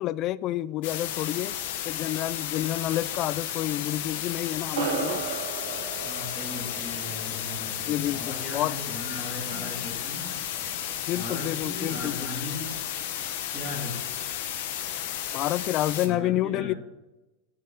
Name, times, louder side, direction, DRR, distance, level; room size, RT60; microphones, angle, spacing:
voice 1, 0.0-1.6 1.8-5.3 7.9-8.7 11.1-12.3 15.3-16.7, left 14 dB, 40° left, 0.3 m, -29 dB
sound 1, 0.8-16.1, left 11 dB, 65° left, 0.9 m, -33 dB
sound 2, 4.7-9.5, right 8 dB, 75° right, 0.9 m, -36 dB
sound 3, 5.4-7.4 7.7-12.0, left 6 dB, 85° left, 1.3 m, -49 dB
voice 2, 6.0-10.7 11.1-12.7 13.5-14.0 16.0-16.8, left 1 dB, 5° right, 3.2 m, -38 dB
7.4 x 6.6 x 5.6 m
supercardioid pair, 125°, 0 cm